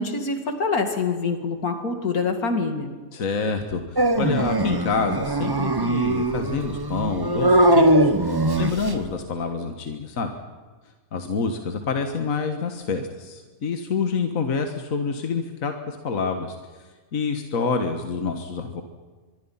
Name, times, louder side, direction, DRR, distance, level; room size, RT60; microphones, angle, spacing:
voice 1, 0.0-2.9, left 4 dB, 85° left, 6 dB, 2.8 m, -25 dB
voice 2, 3.1-10.4 11.1-16.8 17.1-18.8, left 4 dB, 65° left, 6 dB, 1.9 m, -27 dB
Dog, 4.0-9.1, right 1 dB, 20° right, 1.0 m, -21 dB
25.0 x 22.0 x 5.7 m, 1.4 s
omnidirectional pair, 1.5 m